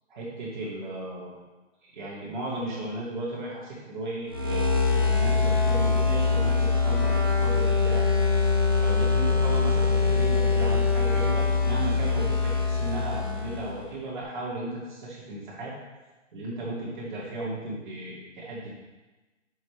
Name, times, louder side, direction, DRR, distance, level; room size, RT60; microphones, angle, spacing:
voice 1, 0.1-1.4 1.8-8.1 8.7-15.7 16.3-18.7, right 2 dB, 40° right, -7 dB, 2.4 m, -35 dB
sound 1, 4.3-13.8, left 4 dB, 20° right, 0.5 m, -23 dB
9.1 x 7.2 x 3.3 m, 1.1 s
hypercardioid pair, 160°, 38 cm